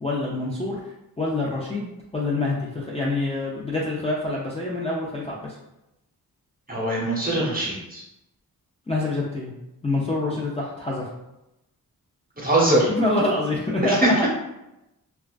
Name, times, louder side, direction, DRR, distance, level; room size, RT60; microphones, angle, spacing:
voice 1, 0.0-0.8 1.2-5.6 8.9-9.5 9.8-11.1 12.9-14.3, left 2 dB, 15° left, -5 dB, 0.4 m, -26 dB
voice 2, 6.7-8.0 12.4-12.9 13.9-14.1, right 1 dB, 25° right, -4 dB, 0.9 m, -22 dB
2.3 x 2.3 x 2.3 m, 0.90 s
cardioid pair, 70°, 38 cm